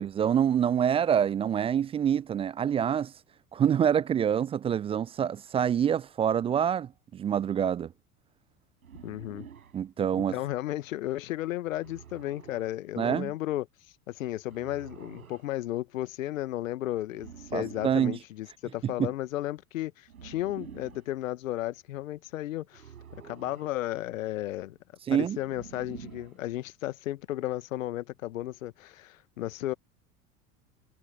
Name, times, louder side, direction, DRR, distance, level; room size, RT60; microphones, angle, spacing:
voice 1, 0.0-3.1 3.5-7.9 9.7-10.3 13.0-13.3 17.5-18.2 18.8-19.1 25.1-25.4, right 8 dB, 15° right, 0.4 m, -26 dB
sound 1, 8.8-9.8 11.7-12.7 14.5-15.5 17.1-18.1 20.1-21.1 22.7-23.8 25.4-26.4, right 8 dB, 70° right, 5.3 m, -48 dB
voice 2, 9.0-9.5 10.3-13.7 14.1-22.8 23.1-24.8 25.1-29.7, left 14 dB, 60° left, 1.6 m, -34 dB
figure-of-eight pair, 80°, 44 cm